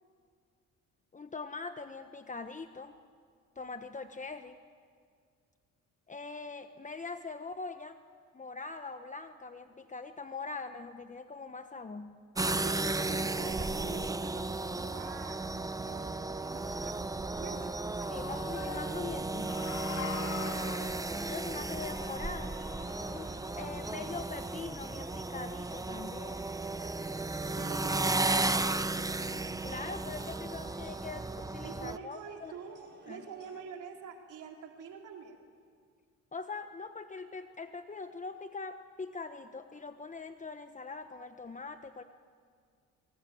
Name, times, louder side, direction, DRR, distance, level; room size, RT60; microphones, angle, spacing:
voice 1, 1.1-3.0 3.5-4.6 6.1-8.0 8.3-12.2 18.1-19.7 21.3-22.6 23.1-26.5 29.6-32.5 33.1-33.2 36.3-42.0, left 4 dB, 25° left, 8 dB, 1.2 m, -42 dB
sound 1, 12.4-32.0, right 2 dB, 10° right, 0.8 m, -34 dB
voice 2, 12.6-15.4 15.7-18.1 19.9-20.7 27.6-29.0 31.6-35.4, right 6 dB, 80° right, 2 dB, 3.6 m, -46 dB
Human voice / Cheering, 17.7-24.3, left 7 dB, 65° left, 2.9 m, -45 dB
sound 2, 19.9-33.6, right 3 dB, 35° right, 5.3 m, -58 dB
25.0 x 24.0 x 9.4 m, 2.1 s
cardioid pair, 90°, 30 cm